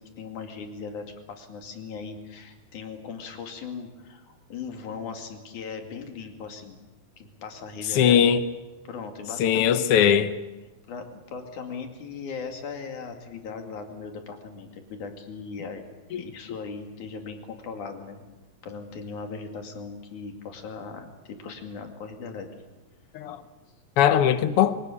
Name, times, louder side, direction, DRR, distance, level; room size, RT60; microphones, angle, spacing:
voice 1, 0.0-6.8 7.2-8.2 8.9-9.9 10.9-15.8 16.2-18.3 18.6-22.5, left 5 dB, 65° left, 3.8 m, -38 dB
voice 2, 7.9-8.4 9.4-10.3 16.1-16.2 23.1-23.4 24.0-24.7, left 9 dB, 85° left, 1.2 m, -20 dB
24.0 x 18.5 x 8.7 m
omnidirectional pair, 3.9 m